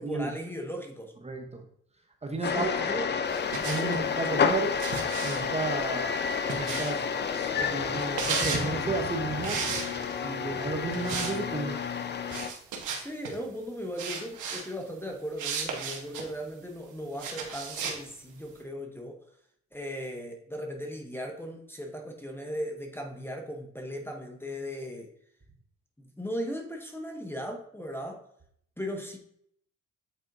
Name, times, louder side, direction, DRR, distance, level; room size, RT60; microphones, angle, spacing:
voice 1, 0.0-1.1 2.4-3.1 3.8-4.4 13.0-19.2 19.7-25.1 26.0-28.3 28.8-29.2, equal, 5° left, 3 dB, 0.9 m, -37 dB
voice 2, 1.2-1.6 2.2-2.9 3.6-4.7 5.2-9.8 10.2-11.8, right 3 dB, 20° right, 3 dB, 0.9 m, -33 dB
sound 1, 2.4-12.5, left 6 dB, 35° left, 0.6 m, -30 dB
sound 2, 3.3-4.1 4.8-7.1 7.9-8.7 9.4-10.3 10.9-11.4 11.6-11.8 12.3-13.3 14.0-14.6 15.4-16.3 17.2-18.0, right 5 dB, 80° right, 1.3 m, -34 dB
8.3 x 4.3 x 2.6 m, 0.69 s
cardioid pair, 90°, 30 cm